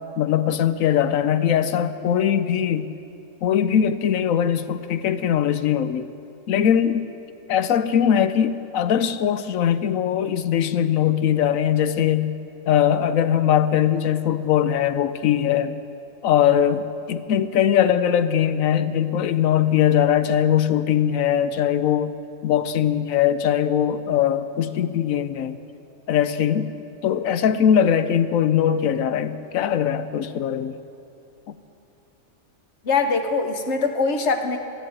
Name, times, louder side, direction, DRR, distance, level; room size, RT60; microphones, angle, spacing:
voice 1, 0.2-2.9 3.4-6.1 6.5-7.1 7.5-12.4 12.7-15.8 16.2-22.1 22.4-25.6 26.1-26.7 27.0-30.7 31.5-31.6, left 9 dB, 85° left, 12 dB, 1.1 m, -21 dB
voice 2, 32.8-34.6, left 4 dB, 60° left, 6 dB, 1.3 m, -22 dB
14.0 x 10.5 x 8.6 m, 2.7 s
omnidirectional pair, 1.4 m